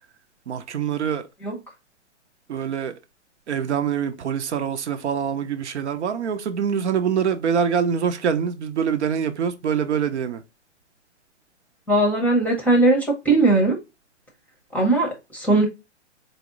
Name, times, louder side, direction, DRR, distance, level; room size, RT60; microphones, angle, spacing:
voice 1, 0.5-1.2 2.5-2.9 3.5-10.4, right 7 dB, 70° right, 0.7 m, -24 dB
voice 2, 11.9-13.8 14.7-15.7, right 2 dB, 5° left, 0.7 m, -19 dB
4.2 x 2.0 x 3.6 m
hypercardioid pair, 130°, 36 cm